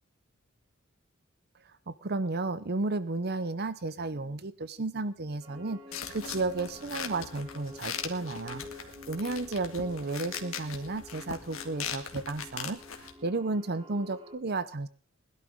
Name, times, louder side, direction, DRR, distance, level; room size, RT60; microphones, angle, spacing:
voice 1, 1.9-5.8 6.1-12.8 13.2-14.9, right 3 dB, 50° right, 14 dB, 0.8 m, -33 dB
sound 1, 5.4-14.3, left 2 dB, 30° right, 1.8 m, -48 dB
sound 2, 5.9-13.1, left 7 dB, 85° left, 1.9 m, -40 dB
20.5 x 12.0 x 3.7 m, 0.38 s
head